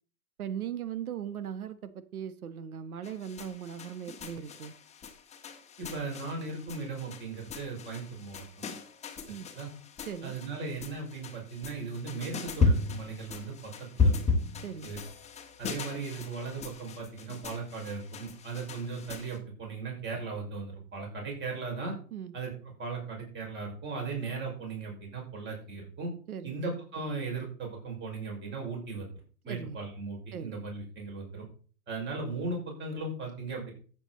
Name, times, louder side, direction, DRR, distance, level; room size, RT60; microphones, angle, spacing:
voice 1, 0.4-4.7 9.3-9.5 10.1-10.3 14.6-14.9 22.1-22.3 26.3-26.5 29.5-29.8 30.3-30.6, right 8 dB, 70° right, 1.2 m, -39 dB
sound 1, 3.0-19.4, left 3 dB, 15° left, 1.4 m, -34 dB
voice 2, 5.8-8.5 9.3-9.7 10.2-14.2 14.8-15.0 15.6-21.9 22.3-26.1 26.4-29.1 29.4-31.5 31.9-33.7, right 4 dB, 25° right, 5.6 m, -37 dB
14.5 x 8.1 x 4.1 m
hypercardioid pair, 115°, 45 cm